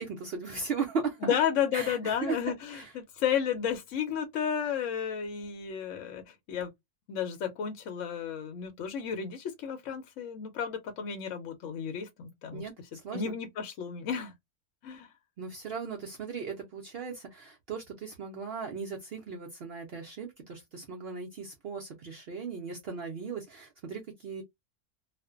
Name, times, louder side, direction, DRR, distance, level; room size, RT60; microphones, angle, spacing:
voice 1, 0.0-1.3 1.7-2.4 2.7-2.9 12.5-12.7 13.0-13.3 15.4-24.4, right 5 dB, 70° right, 0.6 m, -37 dB
voice 2, 1.2-6.7 7.1-12.7 13.1-14.3 14.8-15.1, left 8 dB, 65° left, 0.8 m, -32 dB
2.4 x 2.1 x 2.3 m
omnidirectional pair, 1.6 m